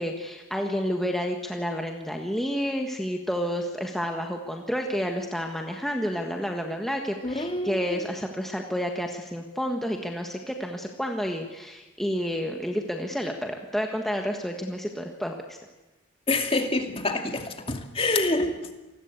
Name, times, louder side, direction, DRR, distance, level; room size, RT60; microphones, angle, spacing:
voice 1, 0.0-15.6, equal, ahead, 2 dB, 1.6 m, -30 dB
voice 2, 7.2-8.0 16.3-18.7, left 2 dB, 30° left, 5 dB, 2.4 m, -27 dB
28.0 x 19.5 x 8.3 m, 1.1 s
head